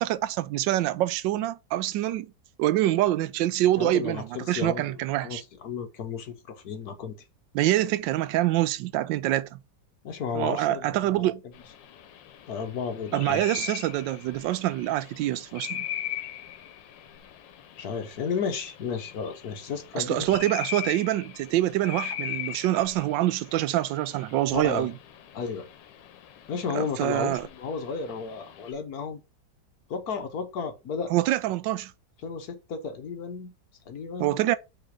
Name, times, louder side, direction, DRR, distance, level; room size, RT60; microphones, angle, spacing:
voice 1, 0.0-2.3 2.6-5.4 7.5-9.6 10.3-11.4 13.1-15.9 19.9-24.9 26.7-27.5 31.1-31.9 34.2-34.6, right 14 dB, 90° right, 1.3 m, -25 dB
voice 2, 3.8-7.1 10.0-11.3 12.5-13.4 17.8-20.5 24.5-24.9 25.3-25.7 26.5-29.2 29.9-31.1 32.2-33.5 33.9-34.3, left 6 dB, 60° left, 1.4 m, -33 dB
sound 1, 11.5-28.7, left 10 dB, 85° left, 1.4 m, -40 dB
5.5 x 3.4 x 5.2 m
omnidirectional pair, 1.9 m